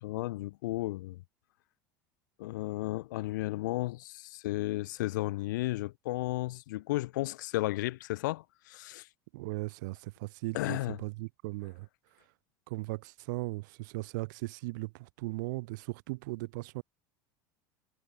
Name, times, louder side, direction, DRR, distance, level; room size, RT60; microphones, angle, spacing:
voice 1, 0.0-1.2 2.4-9.1 10.5-11.0, left 18 dB, 85° left, 0.5 m, -34 dB
voice 2, 9.3-11.9 12.7-16.8, right 23 dB, 75° right, 0.8 m, -38 dB
supercardioid pair, 105°, 10 cm